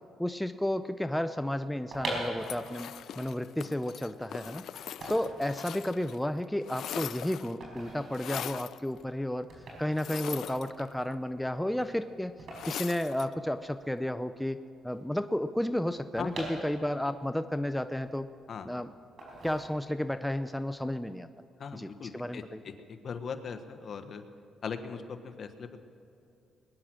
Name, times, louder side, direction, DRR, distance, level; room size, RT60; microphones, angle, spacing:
voice 1, 0.2-4.6 5.1-9.5 9.8-12.4 12.7-14.6 14.8-18.3 18.6-18.9 19.4-21.3 21.7-22.6, left 1 dB, 5° left, 10 dB, 0.5 m, -32 dB
sound 1, 1.7-13.8 14.0-14.1 14.3-17.2 17.6-18.6 19.2-20.2 20.5-20.8, right 1 dB, 55° right, 5.1 m, -43 dB
sound 2, 2.4-6.2 6.4-7.6 8.1-8.8 9.9-11.1 12.5-13.3, left 10 dB, 70° left, 0.4 m, -41 dB
voice 2, 21.6-24.2 24.6-25.8, left 6 dB, 50° left, 8 dB, 1.2 m, -39 dB
21.5 x 10.0 x 6.2 m, 2.6 s
cardioid pair, 90°, 0 cm